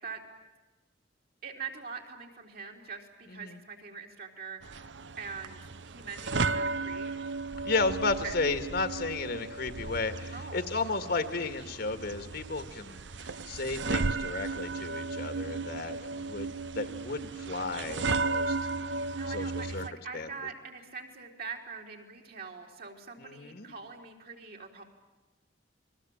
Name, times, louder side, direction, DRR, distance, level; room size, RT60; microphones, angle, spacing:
voice 1, 1.4-4.6 5.2-7.1 8.2-8.3 10.3-10.7 18.6-24.8, right 5 dB, 55° right, 1 dB, 4.0 m, -43 dB
sound 1, 4.6-19.9, right 3 dB, 75° right, 0.8 m, -35 dB
voice 2, 7.6-16.5 16.7-18.6 19.3-19.9 20.1-20.3 23.2-23.8, left 3 dB, 60° left, 10 dB, 2.0 m, -33 dB
29.0 x 22.0 x 8.9 m, 1.1 s
head